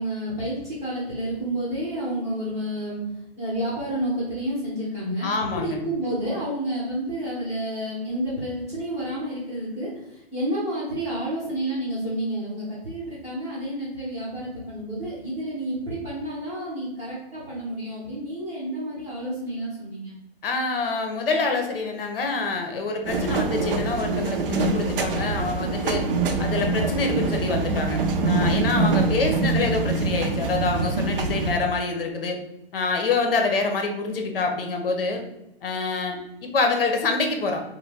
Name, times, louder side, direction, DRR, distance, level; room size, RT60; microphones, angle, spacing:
voice 1, 0.0-3.0 3.4-20.1, right 1 dB, 10° right, -8 dB, 0.7 m, -30 dB
voice 2, 5.2-5.8 20.4-26.0 26.4-32.4 32.7-35.2 35.6-37.6, left 3 dB, 60° left, 4 dB, 0.7 m, -26 dB
sound 1, 23.0-31.5, right 3 dB, 60° right, 0.5 m, -24 dB
3.1 x 2.2 x 3.3 m, 0.90 s
hypercardioid pair, 160°, 31 cm